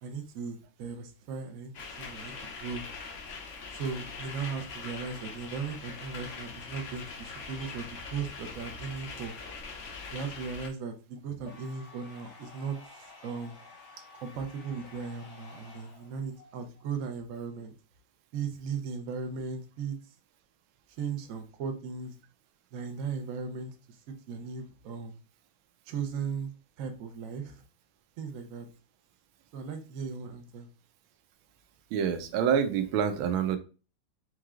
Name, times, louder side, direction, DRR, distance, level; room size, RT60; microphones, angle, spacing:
voice 1, 0.0-1.7 2.0-2.8 3.7-9.3 10.1-12.8 13.2-13.6 14.2-17.7 18.3-20.0 21.0-22.2 22.7-23.7 24.1-25.2 25.9-26.5 26.8-27.6 28.2-28.7 29.5-30.7, right 5 dB, 65° right, 5 dB, 0.8 m, -37 dB
sound 1, 1.7-10.7, left 4 dB, 70° left, 0.7 m, -42 dB
sound 2, 11.4-16.9, left 4 dB, 85° left, 2.3 m, -52 dB
voice 2, 31.9-33.6, right 8 dB, 90° right, 10 dB, 1.4 m, -27 dB
4.6 x 3.1 x 2.4 m, 0.35 s
omnidirectional pair, 2.1 m